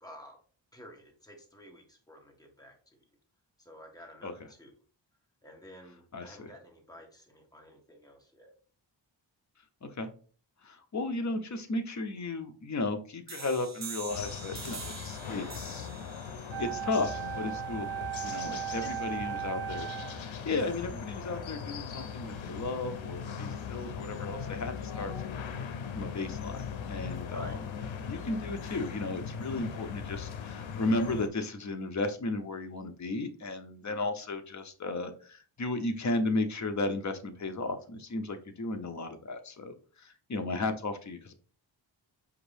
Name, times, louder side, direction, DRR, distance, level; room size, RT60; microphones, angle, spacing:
voice 1, 0.0-0.4 0.7-2.7 3.6-4.7 5.4-8.5 18.8-19.5 27.3-27.6 33.8-34.1, equal, 10° left, 2 dB, 1.0 m, -51 dB
voice 2, 6.1-6.5 9.8-10.1 10.6-15.9 16.6-25.4 25.9-26.6 26.9-27.7 28.1-41.3, left 2 dB, 40° left, 7 dB, 0.6 m, -34 dB
sound 1, 13.3-18.7, right 6 dB, 40° right, 0.5 m, -46 dB
sound 2, 14.1-31.3, left 7 dB, 85° left, 0.6 m, -39 dB
Wind instrument woodwind instrument, 16.5-20.3, right 13 dB, 65° right, 0.9 m, -37 dB
4.9 x 2.6 x 3.3 m, 0.41 s
wide cardioid pair, 105°, 45 cm